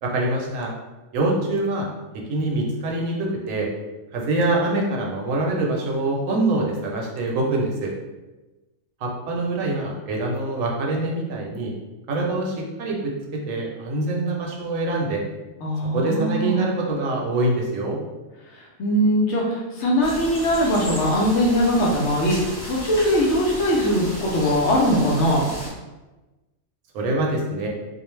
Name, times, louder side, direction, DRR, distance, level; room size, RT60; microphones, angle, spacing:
voice 1, 0.0-0.7 1.1-1.9 2.1-3.7 4.1-7.9 9.0-11.7 12.1-15.2 15.9-18.0 26.9-27.7, right 2 dB, 75° right, -1 dB, 0.9 m, -24 dB
voice 2, 15.6-16.7 18.5-25.5, equal, 65° left, -3 dB, 0.8 m, -21 dB
sound 1, 20.0-25.7, equal, 25° left, 0.5 m, -34 dB
2.5 x 2.0 x 3.0 m, 1.1 s
omnidirectional pair, 1.4 m